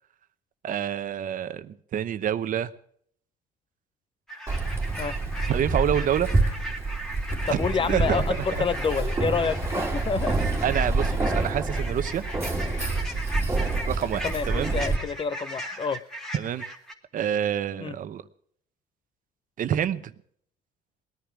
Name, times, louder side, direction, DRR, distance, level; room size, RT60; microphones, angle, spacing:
voice 1, 0.6-2.7 5.5-6.3 7.5-7.6 7.9-8.2 10.6-12.2 13.9-14.7 16.3-16.6 17.1-18.2 19.6-20.1, right 9 dB, 50° right, 0.9 m, -27 dB
sound 1, 4.3-16.9, right 1 dB, ahead, 2.3 m, -38 dB
Keys jangling, 4.5-15.0, right 3 dB, 15° right, 2.2 m, -27 dB
sound 2, 7.1-12.2, left 5 dB, 70° left, 4.5 m, -43 dB
voice 2, 7.5-10.4 14.2-16.0 17.8-17.9, left 5 dB, 30° left, 0.6 m, -28 dB
19.5 x 10.5 x 6.2 m
cardioid pair, 110°, 17 cm